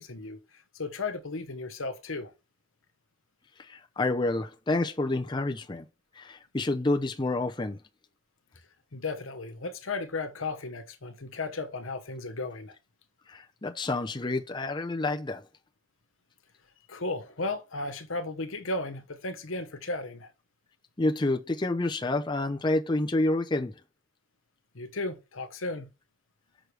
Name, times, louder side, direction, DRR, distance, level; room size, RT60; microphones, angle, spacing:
voice 1, 0.0-2.3 8.9-12.7 16.9-20.3 24.7-25.9, left 3 dB, 90° left, 1.1 m, -35 dB
voice 2, 3.6-5.9 6.1-7.8 13.3-15.4 21.0-23.8, left 2 dB, 20° left, 0.6 m, -28 dB
6.4 x 6.2 x 3.3 m
head